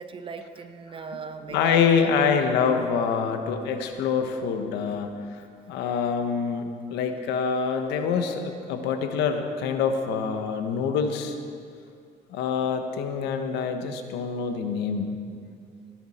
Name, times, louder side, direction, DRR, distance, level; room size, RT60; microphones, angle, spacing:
voice 1, 0.0-2.2, right 5 dB, 30° right, 8 dB, 0.9 m, -37 dB
voice 2, 1.5-5.1 5.7-11.4 12.3-15.2, left 6 dB, 90° left, 6 dB, 1.1 m, -25 dB
17.5 x 10.5 x 4.3 m, 2.3 s
cardioid pair, 110°, 17 cm